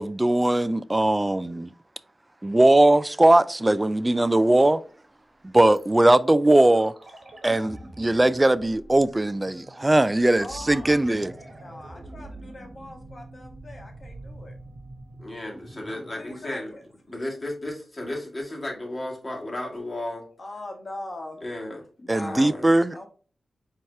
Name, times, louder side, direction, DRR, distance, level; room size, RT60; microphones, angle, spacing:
voice 1, 0.0-1.7 2.4-4.8 5.4-6.9 7.4-11.3 22.1-22.9, right 1 dB, 25° right, 0.3 m, -20 dB
sound 1, 5.7-17.7 18.0-18.1, right 1 dB, 50° right, 1.3 m, -45 dB
voice 2, 10.4-14.5 16.1-16.8 20.4-21.4 22.0-22.6 22.9-23.1, left 2 dB, 50° left, 1.2 m, -41 dB
voice 3, 15.2-16.7 17.1-20.3 21.4-21.8 22.2-22.7, left 1 dB, 30° left, 1.9 m, -34 dB
4.6 x 2.8 x 3.4 m
cardioid pair, 45°, 0 cm